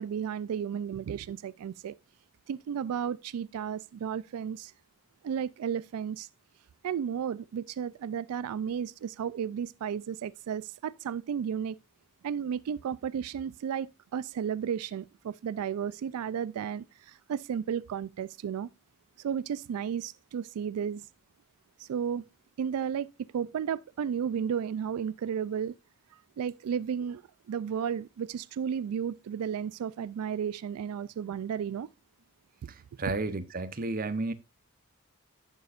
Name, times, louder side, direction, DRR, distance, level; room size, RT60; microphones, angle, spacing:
voice 1, 0.0-1.9 2.5-4.7 5.2-6.3 6.8-11.8 12.2-18.7 19.2-21.1 21.8-22.2 22.6-23.1 23.3-25.7 26.1-27.2 27.5-31.9, right 8 dB, 85° right, 0.3 m, -33 dB
voice 2, 32.7-34.3, right 3 dB, 40° right, 0.7 m, -32 dB
11.0 x 6.8 x 2.4 m
head